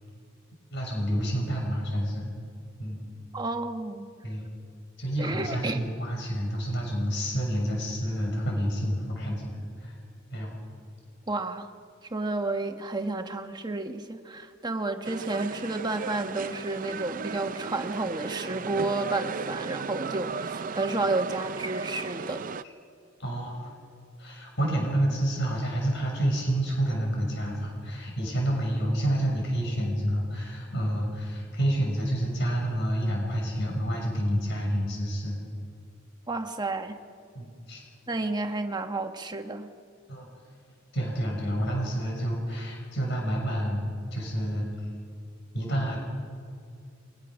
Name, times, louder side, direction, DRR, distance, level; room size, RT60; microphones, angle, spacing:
voice 1, 0.7-2.3 2.8-3.0 4.2-4.5 5.0-9.9 10.3-10.6 23.2-23.7 24.2-35.4 37.3-37.8 40.1-40.3 40.9-44.7 45.5-46.0, equal, 60° left, 0 dB, 6.3 m, -29 dB
voice 2, 3.3-4.0 5.2-5.9 11.3-11.7 12.1-22.4 36.3-37.0 38.1-39.7, right 2 dB, 20° right, 5 dB, 1.3 m, -31 dB
sound 1, 15.0-22.6, right 5 dB, 45° right, 0.5 m, -35 dB
29.0 x 23.5 x 6.3 m, 2.3 s
head